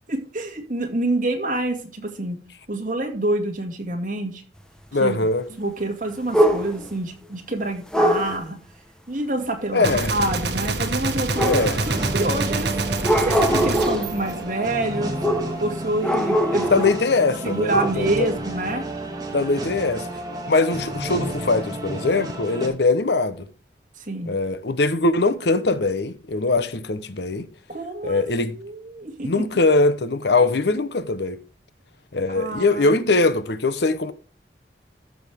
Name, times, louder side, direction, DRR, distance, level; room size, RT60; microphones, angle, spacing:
voice 1, 0.1-2.4 2.7-4.4 5.0-5.2 5.6-8.6 9.1-12.7 13.1-15.1 15.6-16.8 17.4-18.8 24.0-24.4 27.7-28.2 28.5-29.4 32.3-33.0, right 2 dB, 45° right, 2.2 m, -27 dB
voice 2, 4.9-5.4 9.7-10.1 11.4-11.8 16.7-18.3 19.3-20.1 20.5-23.5 24.3-27.5 28.0-28.6 29.2-31.4 32.1-34.1, left 3 dB, 70° left, 0.9 m, -21 dB
sound 1, 6.3-6.9 7.9-8.4 11.3-12.0 13.0-14.1 15.2-15.6 16.0-17.1 17.4-17.9, equal, 5° left, 1.0 m, -22 dB
Gunshot gunfire, 9.8-15.1, right 3 dB, 70° right, 1.5 m, -27 dB
sound 2, 11.6-22.7, right 1 dB, 20° right, 2.1 m, -31 dB
14.0 x 6.4 x 3.5 m
head